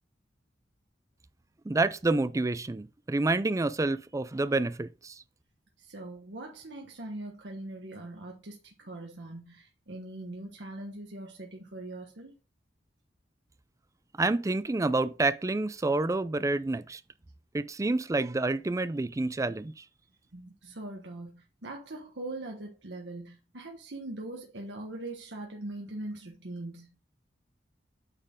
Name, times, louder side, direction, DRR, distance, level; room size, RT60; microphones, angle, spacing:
voice 1, 1.7-5.2 14.2-17.0 17.5-19.8, right 2 dB, 20° right, 0.4 m, -28 dB
voice 2, 5.8-12.3 20.3-26.9, right 2 dB, 80° right, 1.3 m, -41 dB
8.8 x 4.4 x 3.7 m
head